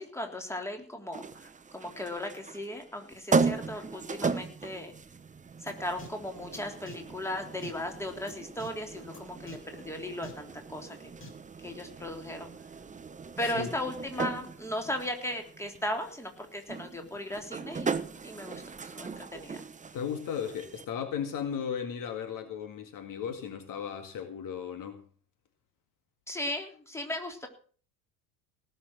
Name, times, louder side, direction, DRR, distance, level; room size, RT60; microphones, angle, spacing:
voice 1, 0.0-4.9 5.6-11.1 11.6-12.5 13.4-19.6 26.3-27.5, left 1 dB, 5° left, 3.5 m, -37 dB
sound 1, 1.1-20.8, right 4 dB, 15° right, 1.1 m, -37 dB
sound 2, 5.7-5.8 6.0-6.1 6.5-6.6 6.9-7.0 7.6-7.7 8.3-8.4 8.6-8.7 9.1-9.2 9.5-9.6 10.2-10.3 11.2-11.3, right 1 dB, 25° left, 3.6 m, -44 dB
voice 2, 19.9-25.0, left 7 dB, 45° left, 2.1 m, -35 dB
18.5 x 6.6 x 7.6 m
figure-of-eight pair, 70°, 46 cm